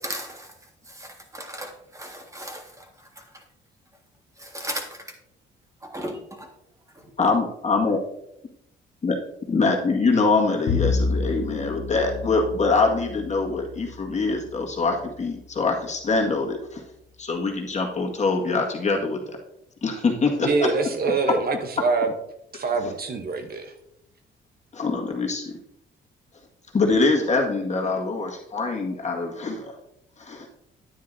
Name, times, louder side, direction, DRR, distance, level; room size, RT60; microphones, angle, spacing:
voice 1, 0.0-0.5 0.9-2.8 3.2-3.3 4.4-5.0 5.9-6.5 7.0-7.1, right 1 dB, 15° right, 3 dB, 1.8 m, -36 dB
voice 2, 7.2-8.0 9.0-9.2 9.5-16.8 17.2-19.2 19.8-20.7 22.5-22.6 24.7-25.6 26.7-29.7 30.2-30.5, left 3 dB, 35° left, 1 dB, 1.8 m, -24 dB
Bowed string instrument, 10.7-15.3, left 4 dB, 65° left, 0.9 m, -30 dB
voice 3, 20.4-22.1 22.5-23.7, right 4 dB, 50° right, 6 dB, 1.0 m, -24 dB
9.7 x 9.4 x 2.7 m, 0.78 s
cardioid pair, 90°, 20 cm